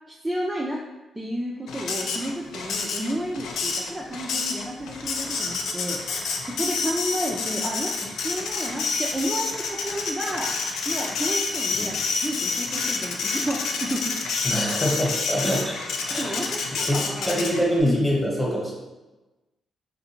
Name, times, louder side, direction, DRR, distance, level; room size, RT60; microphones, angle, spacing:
voice 1, 0.1-0.8 1.1-10.6 10.9-12.0 12.2-14.2 15.4-15.5 16.1-17.3 17.8-18.0, equal, 10° right, -3 dB, 0.3 m, -31 dB
Printer, 1.7-17.8, left 4 dB, 85° left, 0.4 m, -29 dB
voice 2, 14.4-15.8 16.1-16.5 16.8-18.7, equal, 10° left, -4 dB, 1.0 m, -25 dB
3.2 x 2.4 x 2.8 m, 1.1 s
cardioid pair, 100°, 0 cm